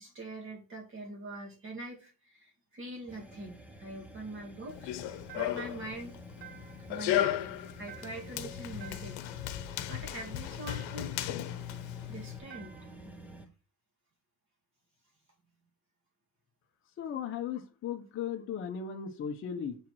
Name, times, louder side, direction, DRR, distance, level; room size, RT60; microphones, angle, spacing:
voice 1, 0.0-6.2 6.9-7.5 7.8-9.2 9.6-11.2 12.1-12.8, right 2 dB, 30° right, 2.5 m, -43 dB
sound 1, 3.1-13.5, right 1 dB, 5° right, 0.6 m, -50 dB
Run, 4.7-12.4, left 13 dB, 80° left, 0.9 m, -36 dB
sound 2, 5.3-5.8 6.4-7.0 7.9-8.4 8.8-9.4 10.7-11.2 12.5-13.0, right 9 dB, 60° right, 1.5 m, -52 dB
voice 2, 17.0-19.8, left 8 dB, 30° left, 1.0 m, -36 dB
7.3 x 4.6 x 4.5 m
cardioid pair, 170°, 40 cm